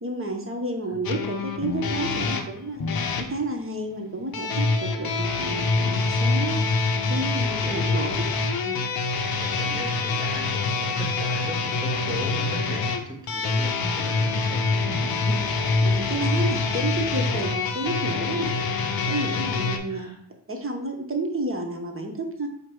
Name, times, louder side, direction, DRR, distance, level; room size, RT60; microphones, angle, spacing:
voice 1, 0.0-2.8 3.2-6.6 7.1-8.1 8.6-8.9 15.3-15.4 15.8-18.6 19.1-20.1 20.5-22.5, right 2 dB, 25° right, 3 dB, 0.8 m, -31 dB
sound 1, 1.0-3.3 4.3-19.8, left 3 dB, 45° left, 0.6 m, -25 dB
voice 2, 7.6-8.5 9.4-15.2 15.9-16.0 19.9-20.1, right 1 dB, 10° right, -2 dB, 1.7 m, -37 dB
4.6 x 2.2 x 4.7 m, 0.66 s
cardioid pair, 55°, 49 cm